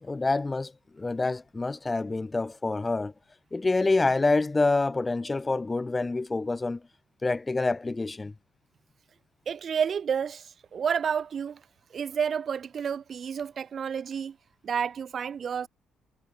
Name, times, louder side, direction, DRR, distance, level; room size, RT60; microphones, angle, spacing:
voice 1, 0.0-3.1 3.5-6.8 7.2-8.3, left 3 dB, 20° left, 2.3 m, -27 dB
voice 2, 9.5-11.6 11.9-14.4 14.6-15.7, right 7 dB, 50° right, 0.6 m, -30 dB
cardioid pair, 90°, 0 cm